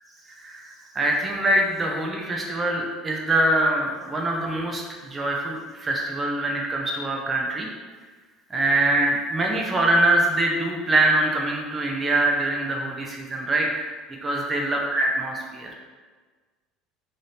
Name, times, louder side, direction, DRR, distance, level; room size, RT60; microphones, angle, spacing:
voice 1, 0.3-7.7 8.5-13.9 14.2-15.7, right 1 dB, 20° right, -1 dB, 0.5 m, -24 dB
3.3 x 2.5 x 4.1 m, 1.4 s
cardioid pair, 125°, 0 cm